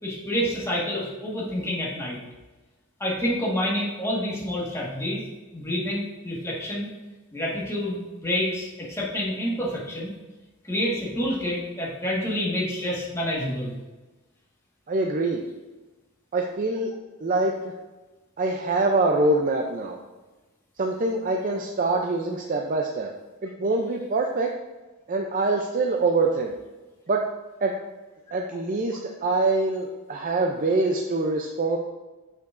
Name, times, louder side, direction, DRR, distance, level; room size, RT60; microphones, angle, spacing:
voice 1, 0.0-2.2 3.0-5.2 5.5-6.9 7.3-10.1 10.7-13.7, equal, 10° left, -5 dB, 1.6 m, -28 dB
voice 2, 14.9-15.4 16.3-16.9 17.2-17.7 18.4-20.0 20.8-23.1 23.4-24.5 25.1-26.5 27.1-27.2 27.6-27.7 28.3-31.8, right 2 dB, 35° right, 2 dB, 0.5 m, -24 dB
8.4 x 6.8 x 2.6 m, 1.2 s
head